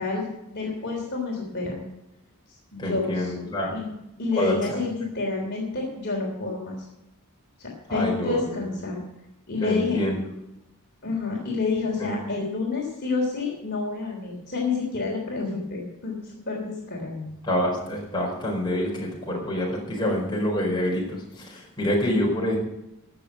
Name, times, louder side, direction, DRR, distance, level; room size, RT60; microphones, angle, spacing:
voice 1, 0.0-1.8 2.7-3.3 3.7-3.9 4.2-6.8 7.6-9.0 9.5-10.0 11.0-17.3, left 4 dB, 50° left, -1 dB, 3.3 m, -29 dB
voice 2, 2.8-3.7 4.4-4.8 7.9-8.7 9.6-10.2 12.0-12.1 17.4-22.6, left 1 dB, 20° left, -3 dB, 4.7 m, -27 dB
16.5 x 6.8 x 7.5 m, 0.88 s
head